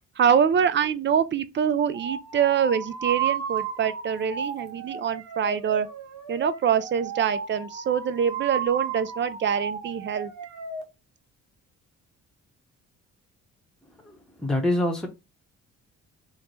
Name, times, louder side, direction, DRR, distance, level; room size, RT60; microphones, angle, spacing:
voice 1, 0.2-5.9 6.3-10.3, right 8 dB, 40° right, 0.4 m, -24 dB
sound 1, 1.9-10.8, right 7 dB, 85° right, 0.8 m, -33 dB
voice 2, 14.0-15.1, left 1 dB, ahead, 0.9 m, -26 dB
3.1 x 2.1 x 4.0 m
cardioid pair, 90°, 30 cm